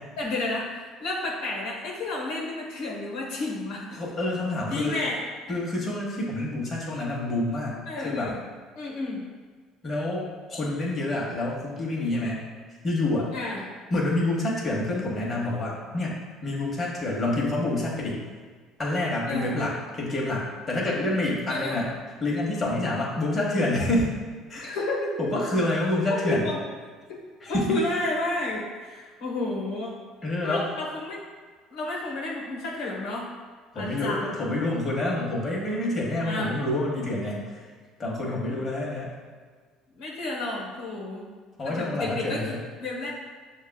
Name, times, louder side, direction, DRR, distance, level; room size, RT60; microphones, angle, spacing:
voice 1, 0.2-4.0 4.7-5.2 5.5-5.6 7.9-8.4 8.7-9.2 13.3-13.6 19.3-19.6 21.5-21.8 24.5-25.2 26.1-26.6 27.1-27.2 27.5-30.0 30.4-31.2 31.7-33.3 33.7-34.2 36.2-36.6 39.9-41.3 41.6-43.1, left 2 dB, 75° left, -4 dB, 0.9 m, -31 dB
voice 2, 3.9-4.9 5.5-8.3 9.8-10.2 10.5-12.4 12.8-13.3 13.9-18.2 18.8-21.9 22.2-24.1 24.5-24.7 25.2-26.5 27.4-27.8 30.2-30.6 33.7-37.7 38.0-39.1 41.6-42.6, left 2 dB, 35° left, -3 dB, 1.1 m, -27 dB
6.3 x 2.3 x 2.2 m, 1.5 s
supercardioid pair, 75°, 0 cm